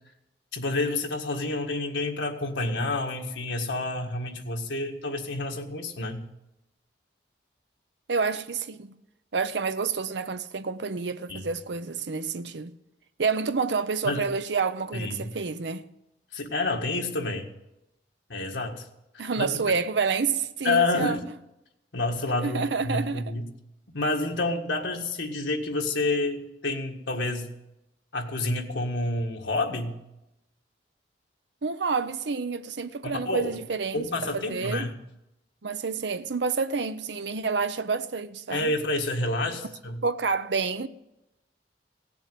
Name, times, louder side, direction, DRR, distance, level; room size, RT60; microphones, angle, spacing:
voice 1, 0.5-6.3 11.3-11.5 14.0-14.3 14.9-15.3 16.3-17.5 18.3-18.9 19.4-19.5 20.6-21.2 21.9-23.5 23.9-27.5 28.1-30.0 33.0-33.6 33.9-34.9 38.5-40.0, left 2 dB, 90° left, 1.7 m, -29 dB
voice 2, 8.1-8.9 9.3-12.8 13.2-15.9 19.2-21.2 22.4-23.2 31.6-34.1 34.3-34.9 35.6-38.7 40.0-40.9, right 5 dB, 75° right, 0.7 m, -28 dB
17.0 x 7.0 x 9.2 m
head